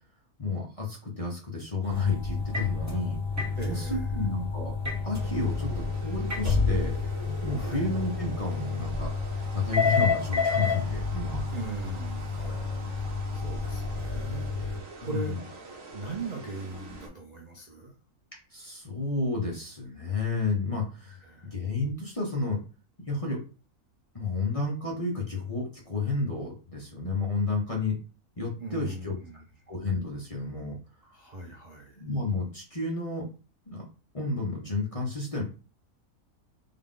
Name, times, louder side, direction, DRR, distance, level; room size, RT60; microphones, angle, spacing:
voice 1, 0.4-3.2 3.7-4.7 5.0-6.9 7.4-9.1 9.5-11.4 12.4-12.6 15.0-15.4 18.5-21.2 21.5-22.6 23.1-23.4 24.1-28.0 28.4-29.1 29.7-30.8 32.0-33.3 33.7-33.9 34.1-35.4, left 3 dB, 30° left, -2 dB, 0.7 m, -31 dB
sound 1, 1.8-14.8, left 4 dB, 10° right, 1.0 m, -30 dB
voice 2, 3.6-4.2 7.5-7.9 11.5-12.7 13.3-15.4 15.9-17.9 21.1-21.5 28.6-29.4 31.0-32.0, right 3 dB, 45° right, 0 dB, 0.5 m, -39 dB
sound 2, 5.1-17.1, right 2 dB, 65° right, 1.1 m, -45 dB
3.7 x 2.4 x 3.7 m, 0.35 s
omnidirectional pair, 1.6 m